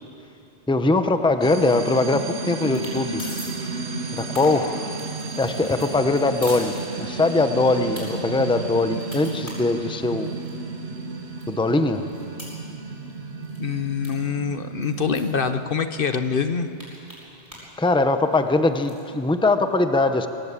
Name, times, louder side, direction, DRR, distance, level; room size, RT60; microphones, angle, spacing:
voice 1, 0.7-3.3 4.1-4.9 5.4-6.7 7.0-10.3 11.5-12.1 17.8-20.3, left 2 dB, 5° left, 8 dB, 0.8 m, -21 dB
sound 1, 1.4-15.9, right 3 dB, 85° right, 2.0 m, -33 dB
sound 2, 1.7-2.3 2.6-2.9 3.2-3.5 3.9-7.3 7.7-8.0 8.5-10.5 11.0-11.1 11.4-13.2 13.4-13.7 14.0-14.1 14.3-14.4 14.8-15.4 16.0-16.1 16.3-17.7 18.0-19.0, equal, 15° right, 7.8 m, -41 dB
voice 2, 13.6-16.7, left 6 dB, 55° left, 9 dB, 1.0 m, -25 dB
23.5 x 20.0 x 8.4 m, 2.8 s
omnidirectional pair, 1.1 m